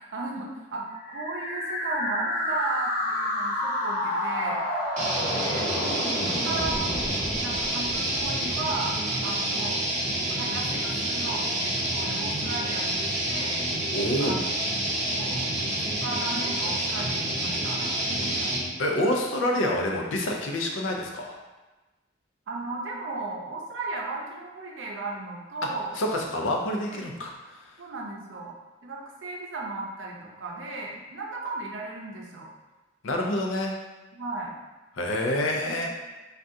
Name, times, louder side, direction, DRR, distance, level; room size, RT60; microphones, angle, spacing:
voice 1, 0.0-4.6 5.3-5.7 6.5-13.6 14.2-14.4 15.1-15.4 15.8-18.5 22.5-26.0 26.9-27.1 27.8-28.6 28.8-32.5 34.1-34.5 35.6-35.8, right 3 dB, 75° right, -1 dB, 0.6 m, -35 dB
sound 1, 1.0-8.9, left 1 dB, 55° left, 0.7 m, -30 dB
sound 2, 5.0-18.7, right 1 dB, 40° right, 0.7 m, -28 dB
voice 2, 5.7-6.5 13.9-14.4 18.8-21.4 25.9-27.3 27.6-27.7 33.0-33.7 35.0-35.9, left 1 dB, 90° left, 1 dB, 0.5 m, -27 dB
3.5 x 2.3 x 2.6 m, 1.2 s
head